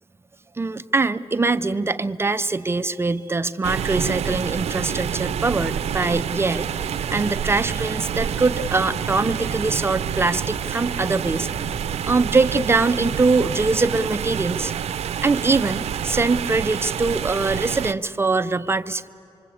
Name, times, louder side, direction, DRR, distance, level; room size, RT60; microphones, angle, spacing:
voice 1, 0.6-6.8 7.1-11.5 12.0-14.7 15.2-19.1, right 3 dB, 25° right, 11 dB, 0.5 m, -22 dB
sound 1, 3.6-17.9, right 8 dB, 90° right, 0.5 m, -28 dB
sound 2, 4.7-13.8, left 1 dB, 90° left, 3.6 m, -43 dB
26.5 x 23.0 x 8.5 m, 2.9 s
wide cardioid pair, 130°, 11 cm